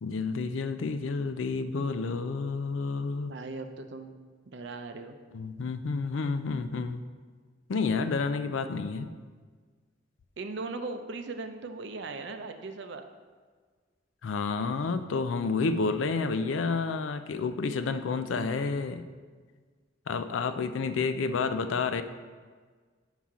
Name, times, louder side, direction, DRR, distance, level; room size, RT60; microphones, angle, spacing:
voice 1, 0.0-3.3 5.3-7.0 7.7-9.1 14.2-19.0 20.1-22.0, left 4 dB, 80° left, 10 dB, 0.4 m, -30 dB
voice 2, 3.2-4.1 4.5-5.2 10.4-13.0 17.8-18.0 20.5-20.6, right 3 dB, 65° right, 7 dB, 0.6 m, -39 dB
7.2 x 5.7 x 3.7 m, 1.5 s
head